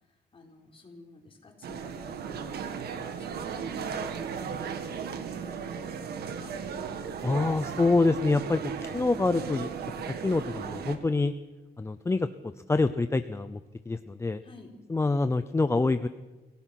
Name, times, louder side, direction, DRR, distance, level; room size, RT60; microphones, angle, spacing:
voice 1, 0.3-2.6 2.9-4.8 5.4-6.5 14.4-14.8, left 3 dB, 35° left, 2 dB, 4.4 m, -50 dB
sound 1, 1.6-11.0, right 6 dB, 85° right, 1.8 m, -36 dB
voice 2, 7.2-9.7 10.1-11.3 11.8-13.6 13.9-14.4 14.9-16.1, left 3 dB, 15° left, 11 dB, 0.6 m, -26 dB
26.5 x 17.0 x 6.0 m, 1.1 s
cardioid pair, 115°, 16 cm